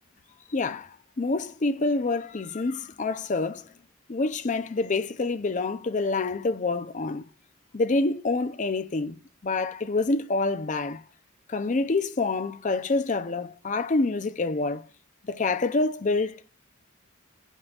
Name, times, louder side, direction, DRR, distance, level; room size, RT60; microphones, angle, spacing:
voice 1, 0.5-3.7 4.1-7.2 7.7-11.0 11.5-14.8 15.3-16.4, left 3 dB, 35° left, 0.5 m, -27 dB
12.0 x 5.4 x 2.4 m
head